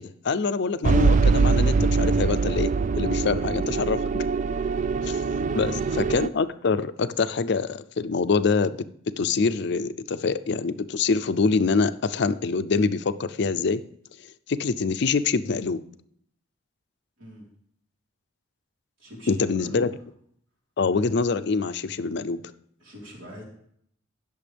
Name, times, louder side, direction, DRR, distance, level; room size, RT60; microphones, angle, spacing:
voice 1, 0.0-2.7 3.0-4.2 5.0-5.2 5.5-8.8 9.2-13.8 14.5-15.8 19.3-19.9 20.8-22.4, left 4 dB, 60° left, 13 dB, 0.5 m, -25 dB
sound 1, 0.8-6.3, right 4 dB, 40° right, 0.3 m, -23 dB
voice 2, 3.3-3.9 5.4-6.0 17.2-17.5 19.0-19.9 22.8-23.4, equal, 80° right, -3 dB, 4.2 m, -43 dB
18.0 x 6.9 x 3.4 m, 0.67 s
head